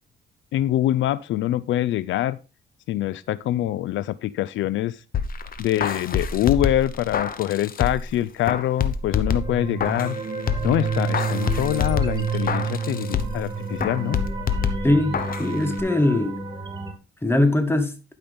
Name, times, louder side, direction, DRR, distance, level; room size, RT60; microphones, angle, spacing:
voice 1, 0.5-2.4 2.9-5.0 5.6-10.2 10.6-14.2, left 13 dB, 75° left, 0.4 m, -24 dB
sound 1, 5.1-8.1 8.5-10.2 10.5-13.5 13.8-15.5 15.8-15.9, left 6 dB, 45° left, 1.0 m, -27 dB
sound 2, 9.0-16.9, right 5 dB, 20° right, 2.2 m, -30 dB
voice 2, 14.8-16.4 17.2-17.9, left 2 dB, 10° left, 1.4 m, -21 dB
12.0 x 5.8 x 3.4 m
cardioid pair, 90°, 20 cm